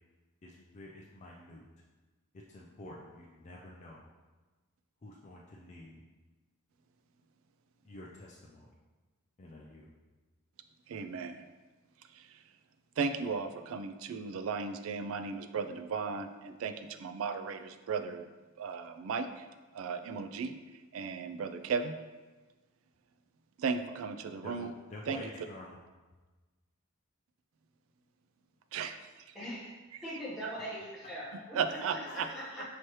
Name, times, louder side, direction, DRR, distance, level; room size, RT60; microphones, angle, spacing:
voice 1, 0.4-1.6 2.5-4.0 5.0-6.0 7.8-8.7 9.4-9.9 24.4-25.8 31.7-32.3, left 1 dB, 30° left, -4 dB, 0.4 m, -49 dB
voice 2, 10.9-11.4 12.1-12.4 13.0-18.3 18.6-19.5 19.7-20.6 20.9-22.0 23.6-24.7 25.1-25.2 28.7-29.3 30.4-30.5 31.5-32.3, right 5 dB, 65° right, 9 dB, 0.3 m, -35 dB
voice 3, 29.3-29.7 30.0-31.6 31.9-32.6, equal, ahead, -9 dB, 1.0 m, -41 dB
5.8 x 3.1 x 3.0 m, 1.3 s
head